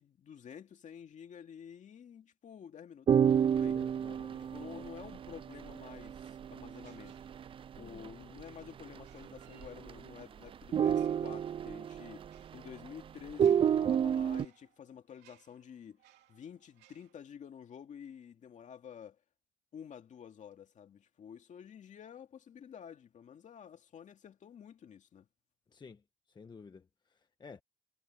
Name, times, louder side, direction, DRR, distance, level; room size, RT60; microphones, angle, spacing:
voice 1, 0.0-3.1 3.5-3.8 4.2-7.2 7.7-16.0 16.3-19.2 19.7-25.3, left 8 dB, 45° left, 2.3 m, -50 dB
sound 1, 3.1-8.1 8.4-8.5 8.8-9.2 9.6-10.2 10.5-12.9 13.3-14.5, right 8 dB, 30° right, 0.3 m, -30 dB
voice 2, 3.7-4.9 7.8-8.1 25.7-26.0 26.3-27.6, left 5 dB, 25° left, 1.1 m, -53 dB
sound 2, 6.8-7.8 8.9-10.2 10.8-17.1, right 14 dB, 85° right, 2.7 m, -67 dB
cardioid pair, 110°, 17 cm